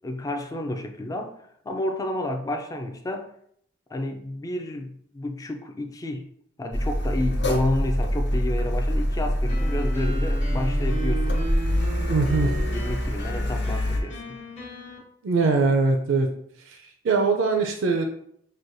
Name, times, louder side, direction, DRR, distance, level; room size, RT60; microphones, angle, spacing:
voice 1, 0.0-1.4 1.6-3.3 3.9-6.3 6.6-11.4 12.6-14.4, left 1 dB, 20° left, 4 dB, 0.3 m, -30 dB
Car, 6.7-14.0, equal, 60° left, 0.7 m, -25 dB
sound 1, 9.5-15.0, right 1 dB, 35° left, 1.0 m, -36 dB
voice 2, 12.1-12.5 15.2-16.3 16.7-18.0, right 4 dB, 80° right, 4 dB, 0.4 m, -22 dB
6.2 x 2.2 x 2.6 m, 0.69 s
head